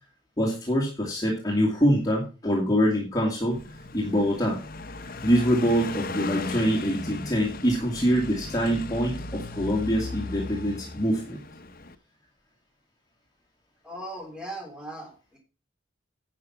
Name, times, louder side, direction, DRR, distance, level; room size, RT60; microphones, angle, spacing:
voice 1, 0.4-3.6 3.9-4.6 5.2-11.4, equal, 20° left, -2 dB, 2.4 m, -24 dB
Car passing by, 3.5-12.0, left 3 dB, 45° left, 0.8 m, -37 dB
voice 2, 13.8-15.4, right 1 dB, 5° right, 1 dB, 3.1 m, -38 dB
11.0 x 6.0 x 5.7 m, 0.33 s
head